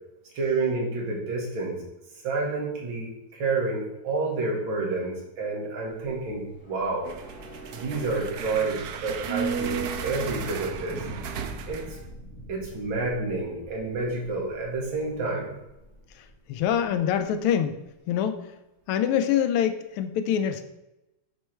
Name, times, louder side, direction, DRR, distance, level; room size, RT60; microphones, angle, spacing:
voice 1, 0.3-1.8 2.2-7.1 7.7-11.0 11.7-12.0 12.5-15.5, right 3 dB, 65° right, -2 dB, 2.4 m, -29 dB
sound 1, 5.9-16.3 16.6-16.7, right 4 dB, 35° left, 1.8 m, -38 dB
sound 2, 7.0-12.1, right 7 dB, 85° right, 0.8 m, -37 dB
voice 2, 16.5-17.8 18.1-18.4 18.9-20.6, left 9 dB, 80° left, 7 dB, 1.5 m, -25 dB
9.3 x 3.3 x 4.4 m, 0.93 s
omnidirectional pair, 2.4 m